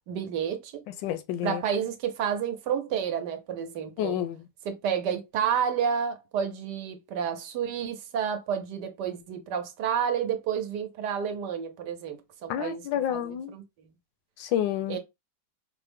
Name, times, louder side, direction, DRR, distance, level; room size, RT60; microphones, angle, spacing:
voice 1, 0.0-0.9 1.4-4.1 4.6-12.8 13.1-13.6 14.9-15.0, right 8 dB, 75° right, 1.3 m, -30 dB
voice 2, 1.0-1.6 4.0-4.5 12.5-13.5 14.4-15.0, left 11 dB, 85° left, 1.3 m, -29 dB
4.7 x 2.1 x 3.4 m
omnidirectional pair, 1.9 m